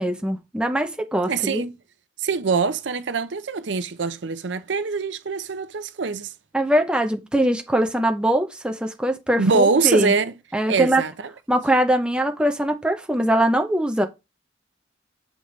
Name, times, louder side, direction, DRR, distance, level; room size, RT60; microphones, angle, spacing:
voice 1, 0.0-1.6 6.5-10.1 10.5-11.0 11.5-14.1, right 1 dB, 5° right, 0.6 m, -22 dB
voice 2, 1.3-1.7 2.2-6.3 9.4-10.3 10.7-11.1, right 4 dB, 70° right, 0.6 m, -23 dB
7.2 x 5.1 x 3.2 m
head